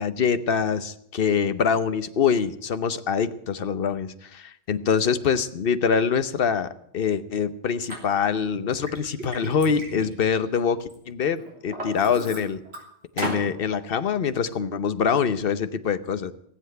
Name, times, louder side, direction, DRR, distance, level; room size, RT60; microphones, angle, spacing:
voice 1, 0.0-12.6 13.2-16.3, left 6 dB, 60° left, 12 dB, 1.0 m, -24 dB
Liquid, 7.9-8.0 8.5-10.9 11.4-12.8 13.2-13.5, right 1 dB, 65° right, 4.1 m, -35 dB
18.5 x 8.0 x 9.3 m, 0.74 s
omnidirectional pair, 1.1 m